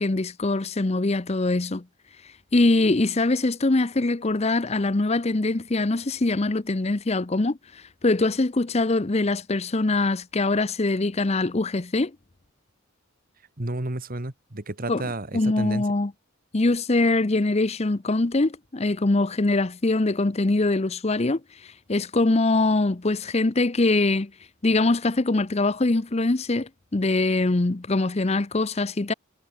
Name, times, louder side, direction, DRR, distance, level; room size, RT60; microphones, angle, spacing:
voice 1, 0.0-1.8 2.5-12.1 14.9-15.0 15.3-16.1 16.5-24.3 24.6-29.1, left 2 dB, 30° left, 0.7 m, -23 dB
voice 2, 13.6-15.8, right 1 dB, 45° right, 1.9 m, -31 dB
head